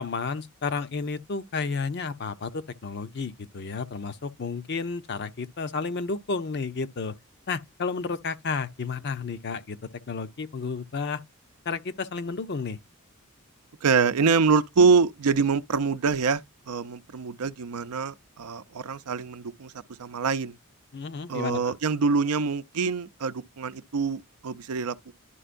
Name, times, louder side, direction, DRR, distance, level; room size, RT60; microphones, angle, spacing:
voice 1, 0.0-7.1 7.5-9.8 10.1-11.2 11.7-12.8 20.9-21.7, left 4 dB, 50° left, 0.6 m, -32 dB
voice 2, 13.8-19.7 20.0-20.6 21.3-25.0, right 5 dB, 90° right, 0.5 m, -25 dB
11.5 x 4.4 x 2.5 m
head